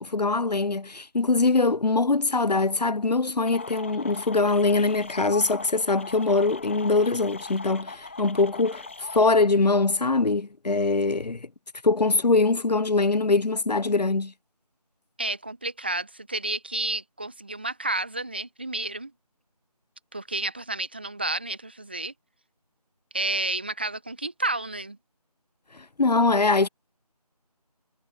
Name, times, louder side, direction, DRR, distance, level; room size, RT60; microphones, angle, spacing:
voice 1, 0.0-11.5 11.8-14.3 26.0-26.7, left 3 dB, 85° left, 0.8 m, -23 dB
sound 1, 3.4-9.3, left 3 dB, 20° left, 1.8 m, -39 dB
voice 2, 15.2-19.1 20.1-22.1 23.1-25.0, right 2 dB, 15° right, 1.2 m, -31 dB
figure-of-eight pair, 170°, 20 cm